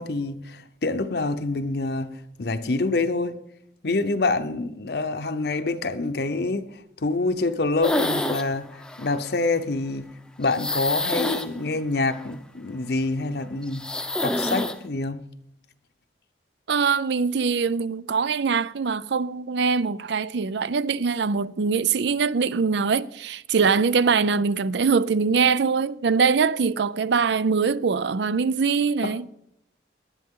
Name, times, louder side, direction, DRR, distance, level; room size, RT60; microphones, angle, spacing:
voice 1, 0.0-3.4 3.8-6.7 7.0-10.1 10.4-13.9 14.2-15.2 29.0-29.3, left 3 dB, 60° left, 0.7 m, -26 dB
sound 1, 7.8-8.5 8.8-9.2 10.4-12.3 13.6-14.8, left 1 dB, 5° left, 0.7 m, -27 dB
voice 2, 16.7-29.3, right 5 dB, 70° right, 0.5 m, -23 dB
19.0 x 11.0 x 3.7 m
head